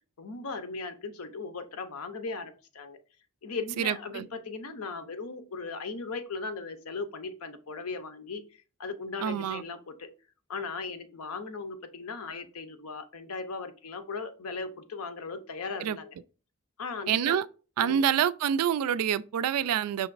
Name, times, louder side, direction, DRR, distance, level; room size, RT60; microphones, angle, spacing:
voice 1, 0.2-3.0 3.4-8.4 8.8-10.1 10.5-16.1 16.8-17.4 17.8-18.0, left 4 dB, 75° left, 0.7 m, -38 dB
voice 2, 3.8-4.3 9.2-9.6 15.8-16.0 17.1-17.5 17.8-20.1, right 9 dB, 85° right, 0.3 m, -27 dB
5.7 x 3.0 x 2.5 m
head